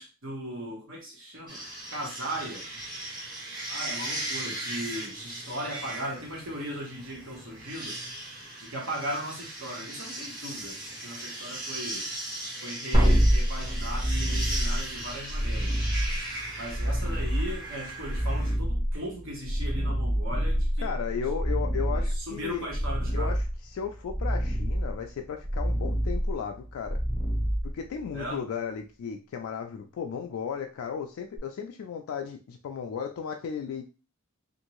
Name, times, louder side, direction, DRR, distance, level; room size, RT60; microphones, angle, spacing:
voice 1, 0.0-1.6 1.9-2.6 3.7-8.0 8.6-10.8 11.0-12.0 12.6-15.7 16.6-20.9 21.9-23.3 28.1-28.4, right 1 dB, 65° right, -1 dB, 1.2 m, -37 dB
sound 1, 1.5-18.5, right 1 dB, 45° right, 1.3 m, -38 dB
sound 2, 12.9-28.2 31.4-31.5, equal, 25° right, 1.0 m, -27 dB
voice 2, 20.8-22.7 23.1-27.0 27.6-33.9, left 7 dB, 80° left, 4 dB, 0.3 m, -35 dB
2.6 x 2.6 x 3.0 m, 0.33 s
head